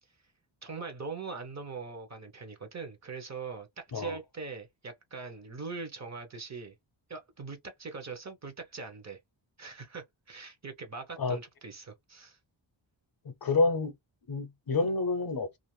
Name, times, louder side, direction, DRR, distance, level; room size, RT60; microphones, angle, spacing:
voice 1, 0.6-6.7 7.1-9.2 9.6-12.4, right 4 dB, 35° right, 0.7 m, -42 dB
voice 2, 13.2-13.9 14.3-15.6, left 3 dB, 50° left, 0.6 m, -28 dB
2.5 x 2.4 x 3.0 m
wide cardioid pair, 155°, 47 cm